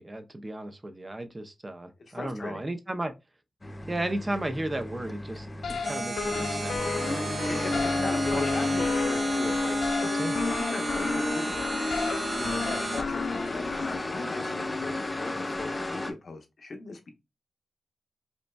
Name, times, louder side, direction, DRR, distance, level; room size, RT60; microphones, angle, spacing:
voice 1, 0.0-3.1 3.9-5.5 5.7-7.3 8.0-8.1 8.3-8.4 10.2-10.4, right 1 dB, 25° right, 0.5 m, -34 dB
voice 2, 2.1-2.6 7.4-9.8 10.3-11.7 12.4-17.1, left 3 dB, 60° left, 0.8 m, -39 dB
sound 1, 3.6-16.1, left 2 dB, 25° left, 0.5 m, -32 dB
sound 2, 5.6-14.0, left 5 dB, 90° left, 0.3 m, -34 dB
sound 3, 5.8-13.0, right 3 dB, 50° right, 0.9 m, -34 dB
5.1 x 2.2 x 2.2 m
wide cardioid pair, 95°, 0 cm